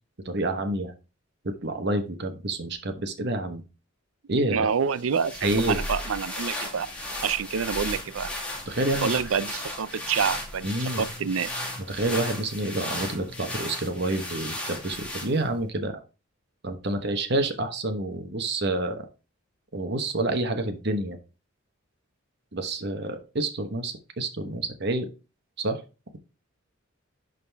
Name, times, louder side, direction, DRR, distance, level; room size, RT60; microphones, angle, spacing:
voice 1, 0.2-0.9 1.4-3.6 4.3-4.7 5.4-5.8 8.7-9.3 10.6-11.0 11.9-16.0 16.6-19.1 19.7-21.2 22.5-25.1 25.6-25.8, right 2 dB, 55° right, 1.1 m, -28 dB
voice 2, 4.5-6.9 7.2-8.3 9.0-11.5, right 6 dB, 85° right, 0.5 m, -27 dB
sound 1, 4.9-15.6, left 1 dB, 5° left, 1.8 m, -35 dB
11.0 x 4.1 x 3.4 m
head